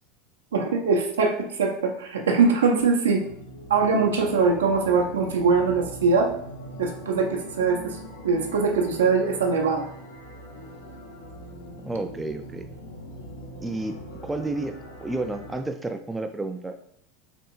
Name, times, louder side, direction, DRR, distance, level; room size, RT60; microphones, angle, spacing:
voice 1, 0.5-3.2 3.7-6.4 6.8-9.9, right 4 dB, 75° right, 3 dB, 0.5 m, -22 dB
sound 1, 3.1-15.6, equal, 75° left, 0.6 m, -41 dB
voice 2, 11.9-12.7 13.6-14.8 15.0-16.9, right 2 dB, 10° right, 6 dB, 0.3 m, -31 dB
3.4 x 2.6 x 2.9 m, 0.68 s
figure-of-eight pair, 80°, 0 cm